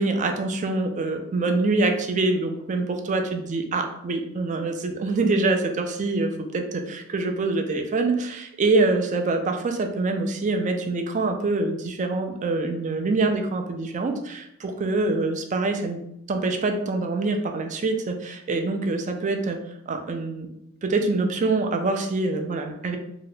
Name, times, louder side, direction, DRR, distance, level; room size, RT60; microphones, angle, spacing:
voice 1, 0.0-16.0 16.3-19.6 19.9-20.5 20.8-23.0, right 3 dB, 35° right, 5 dB, 0.4 m, -25 dB
2.8 x 2.1 x 3.9 m, 0.79 s
head